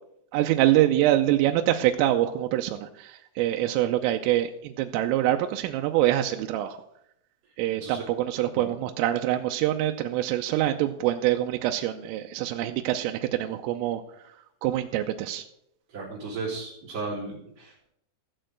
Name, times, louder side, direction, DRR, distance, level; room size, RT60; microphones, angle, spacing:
voice 1, 0.3-6.8 7.6-14.0 14.6-15.5, right 13 dB, 85° right, 5 dB, 3.3 m, -25 dB
voice 2, 15.9-17.9, right 3 dB, 35° right, -7 dB, 4.1 m, -35 dB
15.0 x 6.6 x 7.7 m, 0.76 s
omnidirectional pair, 5.9 m